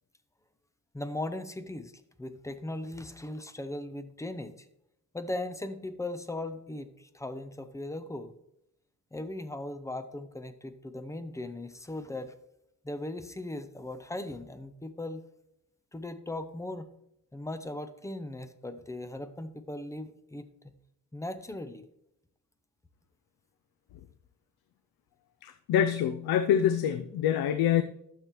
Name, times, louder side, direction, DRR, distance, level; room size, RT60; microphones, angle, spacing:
voice 1, 0.9-1.9 2.2-4.7 5.1-8.3 9.1-12.3 12.8-15.2 15.9-16.9 17.3-20.7 21.1-21.8, left 1 dB, 10° left, 11 dB, 0.5 m, -38 dB
voice 2, 25.4-27.8, left 9 dB, 85° left, 11 dB, 0.5 m, -25 dB
12.0 x 6.6 x 3.0 m, 0.80 s
cardioid pair, 125°, 35 cm